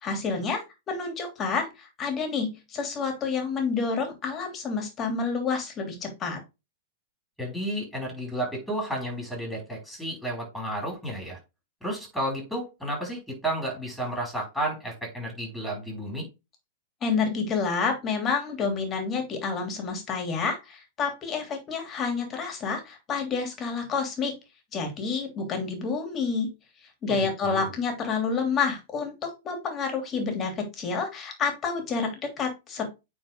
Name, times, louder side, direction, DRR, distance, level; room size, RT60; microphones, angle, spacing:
voice 1, 0.0-6.4 17.0-24.3 24.7-26.5 27.0-32.9, left 5 dB, 30° left, 4 dB, 3.0 m, -29 dB
voice 2, 7.4-11.4 11.8-16.3 27.1-27.7, right 1 dB, ahead, 0 dB, 5.2 m, -32 dB
9.2 x 4.4 x 3.7 m, 0.26 s
hypercardioid pair, 105°, 0 cm